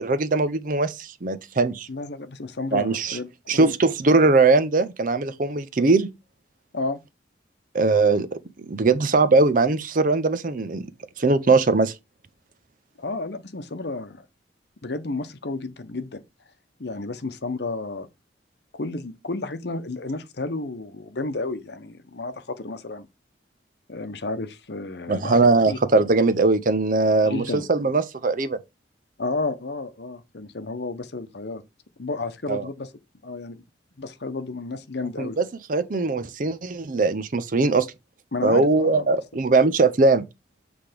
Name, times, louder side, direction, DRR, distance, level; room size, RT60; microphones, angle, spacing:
voice 1, 0.0-1.9 2.7-3.2 3.5-6.1 7.7-10.9 11.2-11.9 25.1-28.6 32.5-32.7 35.2-37.9 38.4-40.3, right 3 dB, 45° right, 0.6 m, -20 dB
voice 2, 1.9-3.7 6.7-7.0 13.0-14.2 14.8-16.2 16.8-18.1 18.7-23.1 23.9-25.4 25.7-25.8 27.2-27.6 29.2-31.6 32.0-32.9 33.2-33.6 34.0-35.4 38.3-39.1, left 3 dB, 65° left, 0.8 m, -31 dB
7.8 x 3.4 x 5.0 m
head